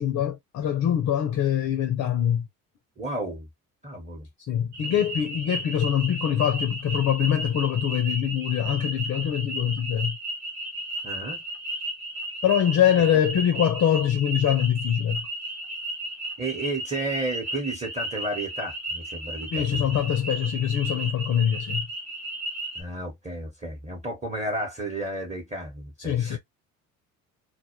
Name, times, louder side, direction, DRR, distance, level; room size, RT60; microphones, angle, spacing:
voice 1, 0.0-2.5 4.4-10.2 12.4-15.3 19.5-21.9 26.0-26.4, left 10 dB, 40° left, 0.5 m, -24 dB
voice 2, 3.0-3.5 3.8-4.3 4.8-4.9 11.0-11.4 16.4-19.9 22.7-26.4, right 2 dB, 15° right, 0.9 m, -32 dB
sound 1, 4.7-22.8, right 1 dB, 85° right, 1.1 m, -34 dB
2.2 x 2.1 x 2.8 m
hypercardioid pair, 60°, 42 cm